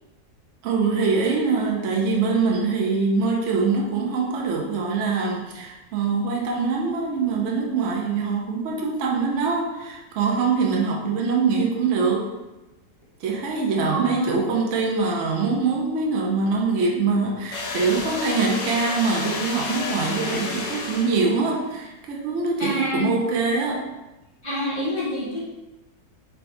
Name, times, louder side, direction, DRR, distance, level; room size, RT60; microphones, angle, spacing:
voice 1, 0.6-12.3 13.2-23.9, right 4 dB, 75° right, 0 dB, 0.6 m, -23 dB
voice 2, 13.9-14.4 22.6-23.1 24.4-25.5, equal, 25° right, -9 dB, 0.6 m, -27 dB
sound 1, 17.5-21.5, left 3 dB, 90° left, 1.4 m, -31 dB
4.6 x 3.4 x 2.6 m, 1.0 s
omnidirectional pair, 1.9 m